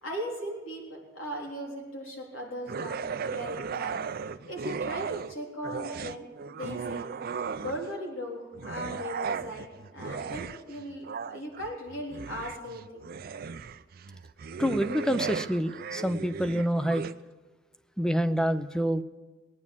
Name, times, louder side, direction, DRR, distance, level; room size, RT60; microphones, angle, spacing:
voice 1, 0.0-4.0 4.5-7.1 7.6-13.1, equal, 80° left, -1 dB, 3.6 m, -38 dB
sound 1, 2.7-5.3 5.6-8.0 8.5-17.1, right 5 dB, 50° right, 0.4 m, -36 dB
voice 2, 14.6-17.1 18.0-19.0, equal, 5° left, 11 dB, 0.5 m, -27 dB
19.0 x 9.6 x 7.3 m, 1.2 s
head